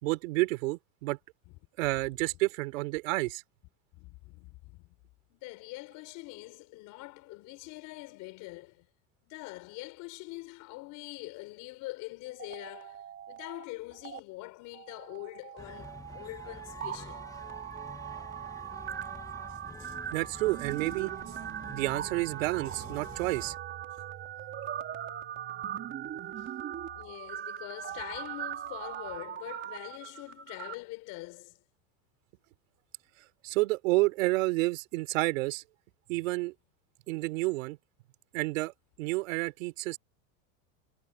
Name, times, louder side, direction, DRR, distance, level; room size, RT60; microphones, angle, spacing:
voice 1, 0.0-1.2 1.8-3.4 20.1-21.1 21.7-23.6 33.4-35.6 36.1-36.5 37.1-37.8 38.3-38.7 39.0-40.0, right 22 dB, 70° right, 3.9 m, -30 dB
voice 2, 3.9-4.9 5.3-8.9 9.2-17.3 26.2-26.5 26.9-31.6, left 22 dB, 45° left, 4.2 m, -44 dB
sound 1, 12.3-13.6 13.9-14.2 14.7-30.7, right 10 dB, 30° right, 3.8 m, -40 dB
sound 2, 15.6-23.6, left 3 dB, 10° left, 1.6 m, -48 dB
supercardioid pair, 145°, 41 cm